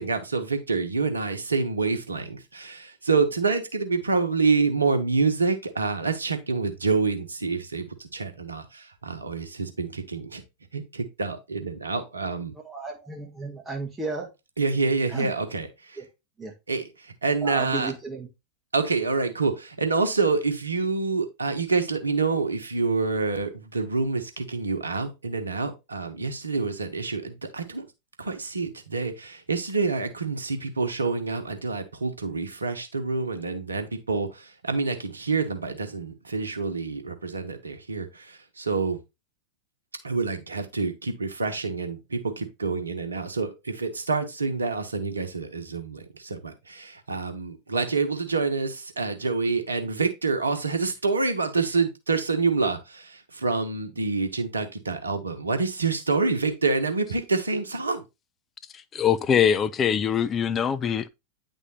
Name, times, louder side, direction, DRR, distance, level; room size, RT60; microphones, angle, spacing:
voice 1, 0.0-10.4 10.7-12.5 14.6-16.0 16.7-17.9 18.7-27.8 28.2-39.0 40.0-58.0, right 4 dB, 75° right, 0.9 m, -27 dB
voice 2, 12.6-14.3 15.1-15.3 16.0-16.1 16.4-16.5 17.4-18.3, right 3 dB, 10° right, 1.0 m, -34 dB
voice 3, 58.7-61.1, left 8 dB, 25° left, 0.4 m, -23 dB
9.6 x 3.6 x 2.8 m
figure-of-eight pair, 90°, 0 cm